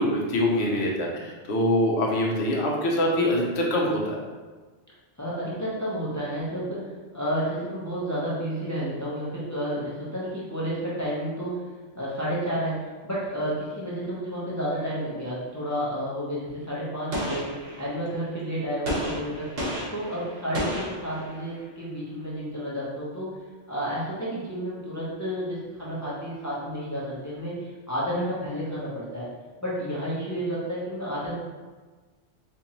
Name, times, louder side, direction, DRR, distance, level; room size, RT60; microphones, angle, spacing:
voice 1, 0.0-4.2, left 1 dB, 70° left, -1 dB, 1.0 m, -24 dB
voice 2, 5.2-11.6 11.9-19.4 19.9-23.3 23.7-29.3 29.6-31.3, equal, 15° left, -8 dB, 0.7 m, -31 dB
Gunshot gunfire, 17.1-18.2 18.9-21.6, equal, 60° right, 1.1 m, -32 dB
4.4 x 2.5 x 2.9 m, 1.3 s
omnidirectional pair, 1.2 m